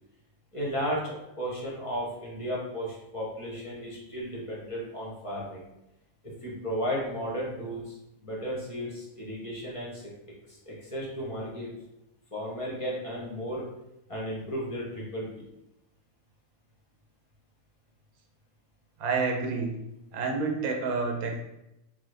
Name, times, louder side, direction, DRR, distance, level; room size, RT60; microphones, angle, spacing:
voice 1, 0.5-5.6 6.4-8.0 8.2-10.0 10.5-11.7 12.3-13.6 14.1-15.3, equal, 35° left, -4 dB, 0.5 m, -34 dB
voice 2, 19.0-19.8 20.1-21.4, right 4 dB, 85° right, 2 dB, 1.1 m, -29 dB
3.2 x 2.1 x 3.2 m, 0.90 s
omnidirectional pair, 1.5 m